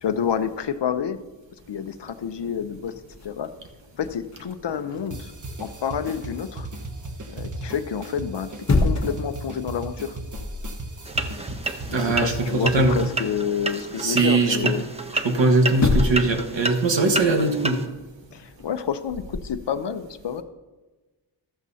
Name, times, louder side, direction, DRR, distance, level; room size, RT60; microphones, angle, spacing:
voice 1, 0.0-1.2 1.7-3.5 4.0-5.3 5.6-6.7 7.3-8.5 8.8-10.2 11.9-14.8 18.3-20.4, left 7 dB, 65° left, 11 dB, 0.8 m, -29 dB
sound 1, 0.6-1.0 1.6-1.7 1.9-6.2 8.4-9.3 9.7-9.9 10.3-10.8 11.1-13.3 15.3-15.4 15.7-16.4 16.7-19.6, left 3 dB, 40° left, 1.0 m, -29 dB
sound 2, 5.1-13.3, right 2 dB, 40° right, 1.3 m, -36 dB
sound 3, 11.0-17.9, right 2 dB, 15° right, 0.8 m, -31 dB
voice 2, 11.9-13.0 14.0-14.7 15.2-17.8, right 3 dB, 75° right, 4 dB, 1.6 m, -21 dB
13.5 x 13.0 x 2.8 m, 1.2 s
wide cardioid pair, 110°, 45 cm